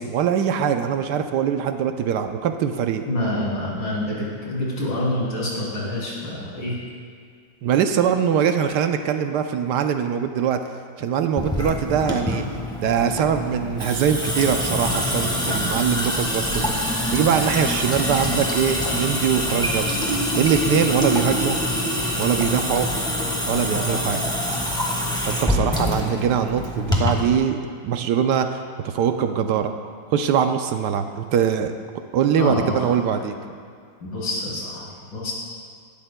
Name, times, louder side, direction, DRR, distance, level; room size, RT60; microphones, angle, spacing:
voice 1, 0.0-3.0 7.6-10.6 11.0-12.4 12.8-16.7 17.1-20.0 20.3-21.6 22.2-22.9 23.5-24.4 25.2-27.6 27.8-29.7 30.1-31.7 32.1-33.3, right 8 dB, 75° right, 7 dB, 1.1 m, -22 dB
voice 2, 3.1-6.8 32.4-32.9 34.0-35.3, left 1 dB, 85° left, -6 dB, 3.8 m, -27 dB
Water tap faucet / Sink (filling or washing) / Drip, 11.4-27.3, left 1 dB, 5° left, 1.1 m, -25 dB
17.5 x 12.5 x 2.2 m, 2.1 s
omnidirectional pair, 2.0 m